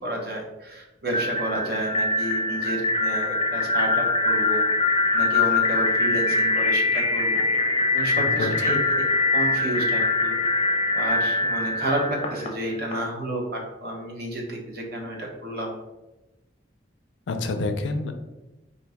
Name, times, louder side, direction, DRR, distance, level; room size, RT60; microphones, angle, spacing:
voice 1, 0.0-4.6 5.1-7.5 7.9-9.0 9.3-10.4 10.9-15.7, right 1 dB, 55° right, 0 dB, 0.8 m, -30 dB
sound 1, 1.1-12.9, left 2 dB, 30° left, 0.6 m, -23 dB
voice 2, 8.1-8.8 17.3-18.1, left 2 dB, 75° left, 7 dB, 0.4 m, -28 dB
3.9 x 2.6 x 3.4 m, 1.0 s
head